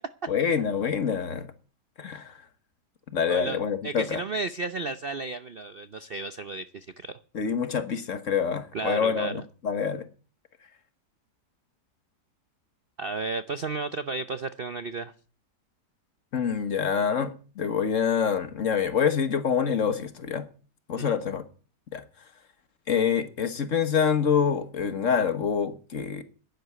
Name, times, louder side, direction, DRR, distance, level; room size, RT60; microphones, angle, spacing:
voice 1, 0.3-1.5 2.0-2.4 3.1-4.2 7.3-10.1 16.3-20.4 20.9-21.4 21.9-22.0 22.9-26.2, left 7 dB, 50° left, 1.5 m, -26 dB
voice 2, 3.3-3.6 3.8-7.2 8.7-9.3 13.0-15.1 21.0-21.2, right 3 dB, 55° right, 0.6 m, -33 dB
10.5 x 10.5 x 8.0 m
omnidirectional pair, 1.8 m